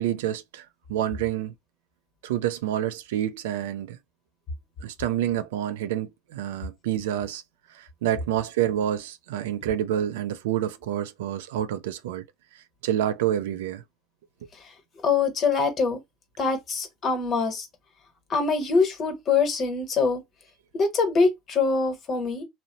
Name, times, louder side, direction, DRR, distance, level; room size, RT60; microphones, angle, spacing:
voice 1, 0.0-1.5 2.2-4.0 4.8-7.4 7.7-12.2 12.8-13.8, right 11 dB, 80° right, 0.3 m, -28 dB
voice 2, 15.0-16.0 16.4-17.7 18.3-20.2 20.7-22.4, left 4 dB, 40° left, 1.0 m, -24 dB
2.7 x 2.0 x 2.7 m
hypercardioid pair, 80°, 0 cm